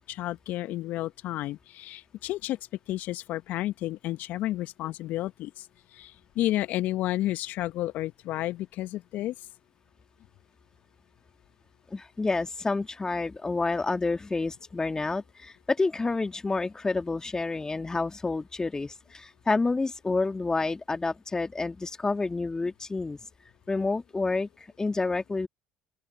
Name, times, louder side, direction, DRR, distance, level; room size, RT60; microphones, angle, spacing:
voice 1, 0.1-2.6 2.9-5.7 5.9-9.3, left 15 dB, 60° left, 1.6 m, -31 dB
voice 2, 11.9-23.2 23.7-24.5 24.8-25.5, left 3 dB, 20° left, 2.7 m, -29 dB
open air
hypercardioid pair, 60°, 3 cm